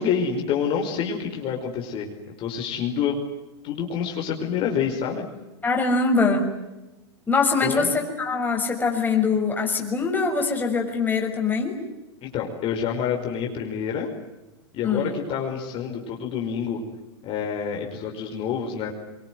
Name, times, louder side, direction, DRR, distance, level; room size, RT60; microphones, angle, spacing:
voice 1, 0.0-2.1 2.4-3.2 3.6-5.2 7.6-7.9 12.2-14.1 14.7-16.8 17.2-18.9, left 7 dB, 40° left, 1 dB, 5.2 m, -27 dB
voice 2, 5.6-6.5 7.3-11.8 14.8-15.2, left 4 dB, 15° left, 1 dB, 6.2 m, -23 dB
24.0 x 24.0 x 9.5 m, 1.0 s
hypercardioid pair, 120°, 14 cm